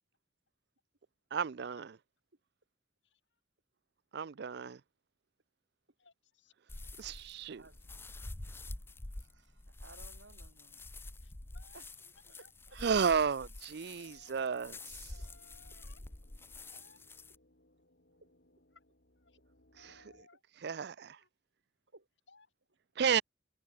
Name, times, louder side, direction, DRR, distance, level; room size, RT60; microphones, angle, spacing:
voice 1, 1.3-1.9 4.1-4.8 7.0-7.6 12.8-15.1 19.8-19.9 20.6-21.2 23.0-23.2, right 6 dB, 60° right, 0.5 m, -33 dB
voice 2, 3.0-3.4 6.0-6.5 11.2-13.4 14.0-14.3 15.1-16.0 16.6-17.3 18.7-18.8 19.2-19.4 19.7-20.8 21.2-21.3 22.3-22.5, left 4 dB, 80° left, 5.6 m, -64 dB
sound 1, 6.7-17.4, left 2 dB, 15° left, 0.5 m, -48 dB
voice 3, 9.1-10.8 11.7-11.8 12.7-12.8 18.2-18.3 21.9-22.1, right 3 dB, 80° right, 2.7 m, -58 dB
sound 2, 13.8-20.2, left 1 dB, 65° left, 5.2 m, -69 dB
open air
head